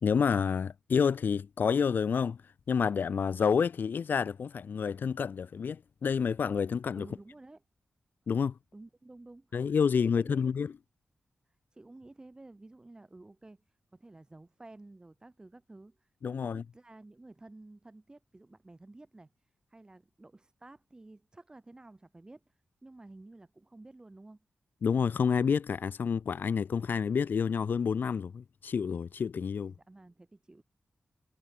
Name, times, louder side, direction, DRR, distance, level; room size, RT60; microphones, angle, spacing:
voice 1, 0.0-7.1 8.3-8.6 9.5-10.7 16.2-16.6 24.8-29.7, left 6 dB, 65° left, 1.0 m, -29 dB
voice 2, 7.0-7.6 8.7-10.6 11.7-24.5 29.7-30.6, right 2 dB, 20° right, 4.2 m, -53 dB
wide cardioid pair, 100°, 4 cm